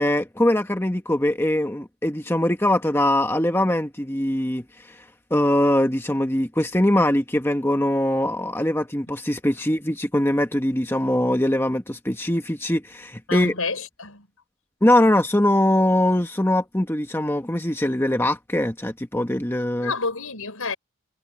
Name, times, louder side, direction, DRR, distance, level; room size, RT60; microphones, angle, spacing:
voice 1, 0.0-5.0 5.3-13.5 14.8-19.9, left 1 dB, 10° left, 1.2 m, -22 dB
voice 2, 13.3-14.3 19.8-20.8, left 4 dB, 75° left, 5.4 m, -29 dB
head